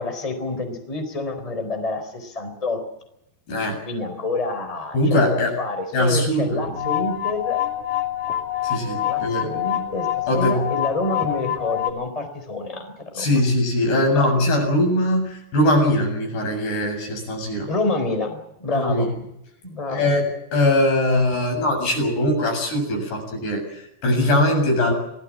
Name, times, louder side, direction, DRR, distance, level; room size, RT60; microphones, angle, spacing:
voice 1, 0.0-2.8 3.8-7.6 9.0-12.9 13.1-13.4 13.9-14.3 17.7-19.1 19.6-20.1, left 2 dB, 10° left, 6 dB, 3.8 m, -28 dB
voice 2, 3.5-3.8 4.9-5.5 5.9-6.6 8.6-9.5 10.3-10.6 13.2-17.7 18.7-19.1 19.9-24.9, left 1 dB, 75° left, 3 dB, 9.5 m, -21 dB
sound 1, 6.7-11.9, left 12 dB, 40° left, 3.6 m, -26 dB
27.0 x 19.0 x 7.4 m, 0.83 s
omnidirectional pair, 4.7 m